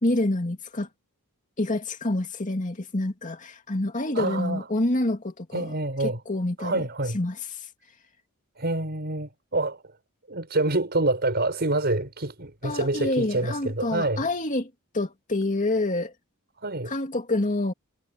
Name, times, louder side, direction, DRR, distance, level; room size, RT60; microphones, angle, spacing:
voice 1, 0.0-0.9 1.6-5.7 6.0-6.8 7.1-7.4 12.6-16.1 16.9-17.7, left 2 dB, 35° left, 2.5 m, -27 dB
voice 2, 4.1-4.7 5.5-6.2 6.6-7.2 8.6-9.8 10.3-14.3 16.6-16.9, right 2 dB, 45° right, 6.4 m, -27 dB
head